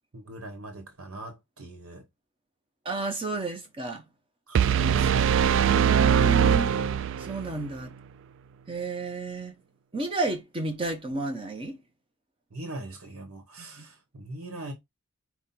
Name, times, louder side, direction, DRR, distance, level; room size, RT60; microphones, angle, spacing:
voice 1, 0.1-2.0 4.5-5.7 12.5-14.7, right 2 dB, 90° right, 1.1 m, -41 dB
voice 2, 2.8-4.0 5.4-6.8 7.2-7.9 8.7-9.6 9.9-11.8 13.6-13.7, right 3 dB, 25° right, 0.8 m, -31 dB
sound 1, 4.5-7.5, right 8 dB, 60° right, 0.3 m, -22 dB
5.6 x 2.3 x 4.2 m
head